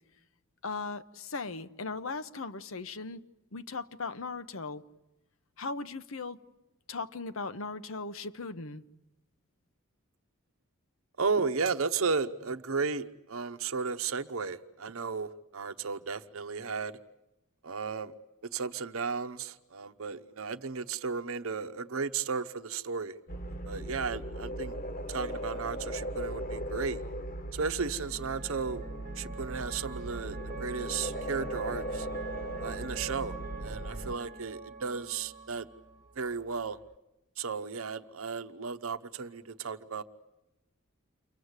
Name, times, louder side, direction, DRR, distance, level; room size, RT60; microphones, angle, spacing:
voice 1, 0.6-3.2 3.5-4.8 5.6-6.4 6.9-8.8, left 4 dB, 70° left, 1.0 m, -38 dB
voice 2, 11.2-17.0 17.6-18.1 18.5-23.2 23.6-24.8 25.1-27.0 27.5-28.8 29.2-32.1 32.6-33.4 33.6-35.7 36.2-36.8 37.4-40.0, right 5 dB, 75° right, 0.9 m, -34 dB
sound 1, 23.3-34.2, right 1 dB, 40° left, 1.4 m, -38 dB
sound 2, 26.6-37.0, right 4 dB, 40° right, 1.2 m, -46 dB
29.0 x 24.5 x 8.1 m
head